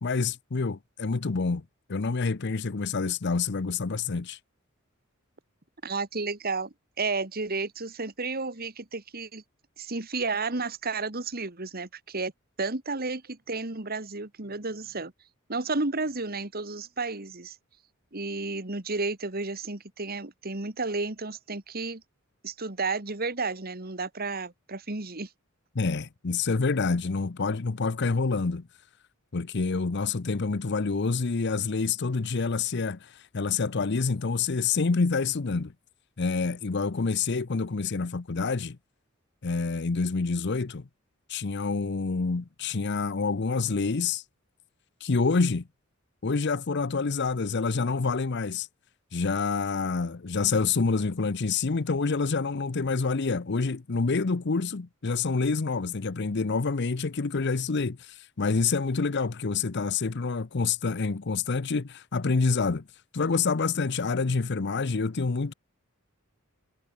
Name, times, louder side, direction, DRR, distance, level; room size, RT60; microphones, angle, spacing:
voice 1, 0.0-1.6 1.9-4.4 25.7-28.7 29.3-35.7 36.2-38.8 39.4-40.9 41.3-44.2 45.0-45.7 46.2-48.7 49.1-62.9 63.1-65.5, left 4 dB, 55° left, 0.7 m, -27 dB
voice 2, 5.8-9.4 9.8-12.3 12.6-15.1 15.5-17.6 18.1-22.0 22.4-25.3, right 3 dB, 45° right, 2.2 m, -32 dB
head